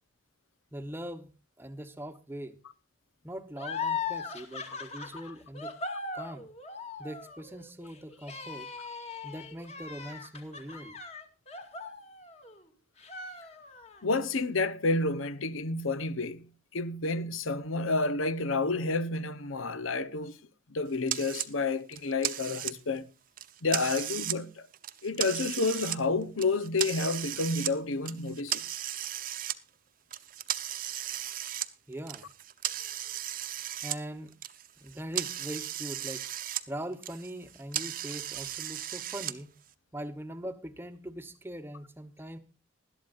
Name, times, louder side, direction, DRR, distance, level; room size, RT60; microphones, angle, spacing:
voice 1, 0.7-1.3 1.6-2.6 3.2-5.8 6.1-6.5 7.0-8.7 9.2-11.0 31.9-32.3 33.8-34.3 34.8-36.3 36.7-39.5 39.9-42.4, right 1 dB, 10° right, 0.9 m, -41 dB
sound 1, 3.6-12.6 13.0-14.0, left 5 dB, 30° left, 2.3 m, -39 dB
voice 2, 14.0-16.5 16.7-20.4 20.7-23.1 23.6-24.7 25.0-28.6, left 3 dB, 90° left, 1.0 m, -30 dB
sound 2, 21.1-21.5 21.9-23.0 23.4-24.4 24.7-26.0 26.4-27.7 28.1-29.6 30.1-34.0 34.3-36.6 36.9-39.3, right 12 dB, 45° right, 0.8 m, -35 dB
19.5 x 12.5 x 2.5 m
head